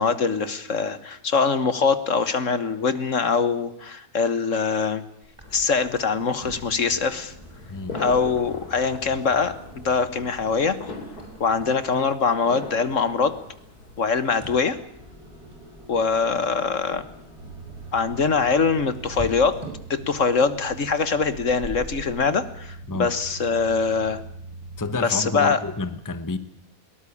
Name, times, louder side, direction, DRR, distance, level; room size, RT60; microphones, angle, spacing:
voice 1, 0.0-5.0 5.5-7.3 7.9-10.8 11.4-13.4 14.0-14.8 15.9-17.0 17.9-19.6 19.9-24.2 25.0-25.6, left 5 dB, 55° left, 13 dB, 1.6 m, -23 dB
sound 1, 5.2-22.1, equal, 20° right, 6.9 m, -44 dB
sound 2, 5.4-14.5, left 2 dB, 80° left, 4.3 m, -41 dB
sound 3, 17.4-25.0, right 3 dB, 70° right, 1.8 m, -41 dB
voice 2, 24.8-26.4, left 3 dB, 15° left, 12 dB, 1.1 m, -29 dB
22.0 x 18.5 x 8.5 m, 0.70 s
omnidirectional pair, 1.6 m